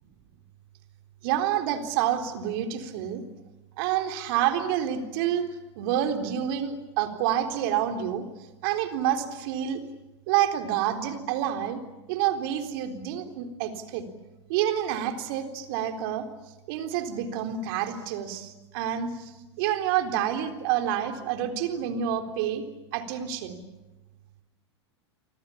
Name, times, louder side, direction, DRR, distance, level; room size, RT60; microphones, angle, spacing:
voice 1, 1.2-3.2 3.8-5.5 5.8-8.2 8.6-9.8 10.3-11.8 12.1-14.0 14.5-16.3 16.7-22.6 22.9-23.6, right 10 dB, 55° right, 6 dB, 3.9 m, -28 dB
29.0 x 25.0 x 7.3 m, 1.1 s
hypercardioid pair, 95°, 15 cm